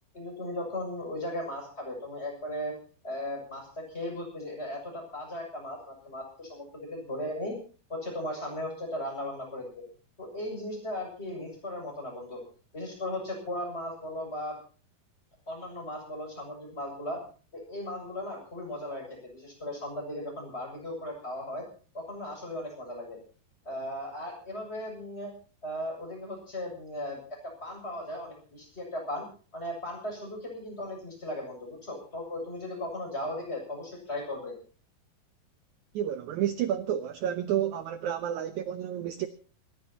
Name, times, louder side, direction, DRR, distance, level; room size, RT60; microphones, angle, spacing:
voice 1, 0.1-2.7 3.0-7.6 7.9-9.8 10.2-12.4 12.7-14.6 15.5-17.2 17.5-21.6 21.9-23.2 23.7-25.3 25.6-29.2 29.5-34.5, left 1 dB, 15° left, 7.4 m, -37 dB
voice 2, 35.9-39.3, right 10 dB, 70° right, 2.0 m, -30 dB
27.5 x 14.5 x 2.9 m
omnidirectional pair, 4.2 m